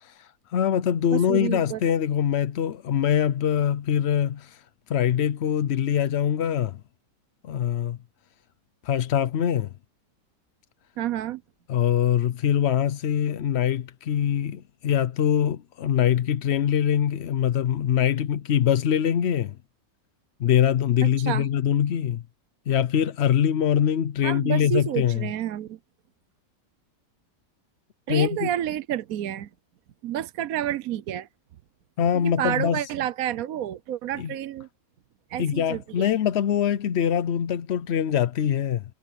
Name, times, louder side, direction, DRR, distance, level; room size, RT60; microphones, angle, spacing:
voice 1, 0.0-4.6 4.9-6.8 7.4-8.0 8.8-9.7 11.7-19.6 20.4-22.2 22.7-25.3 28.1-28.5 32.0-32.8 34.2-34.3 35.4-38.8, left 9 dB, 65° left, 0.6 m, -23 dB
voice 2, 1.1-1.8 11.0-11.4 21.0-21.5 24.2-25.8 28.1-29.5 30.0-31.3 32.1-34.7 35.3-36.1, right 11 dB, 65° right, 1.1 m, -29 dB
omnidirectional pair, 1.8 m